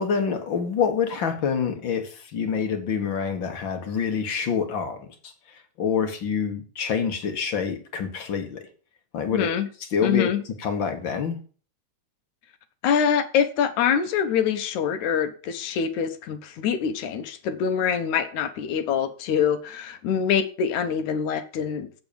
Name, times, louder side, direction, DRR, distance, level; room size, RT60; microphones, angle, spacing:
voice 1, 0.0-8.7 9.1-9.5 9.9-10.3 10.6-11.4, left 6 dB, 45° left, 7 dB, 1.9 m, -27 dB
voice 2, 9.3-9.7 10.0-10.4 12.8-21.9, left 7 dB, 75° left, 10 dB, 2.4 m, -25 dB
8.1 x 7.8 x 6.9 m, 0.40 s
omnidirectional pair, 3.5 m